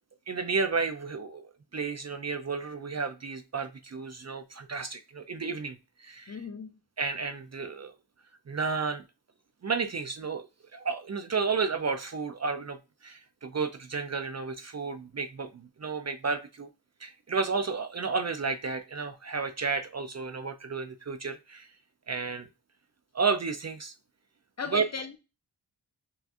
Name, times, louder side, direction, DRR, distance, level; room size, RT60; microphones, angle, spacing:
voice 1, 0.3-6.4 7.0-7.9 8.5-9.0 9.6-10.5 10.7-12.8 13.0-16.7 17.0-21.7 22.1-22.5 23.1-23.9 24.7-24.8, right 4 dB, 40° right, 0.4 m, -32 dB
voice 2, 6.3-6.8 24.6-25.2, left 5 dB, 35° left, 0.6 m, -37 dB
6.0 x 2.5 x 2.4 m
wide cardioid pair, 105°, 44 cm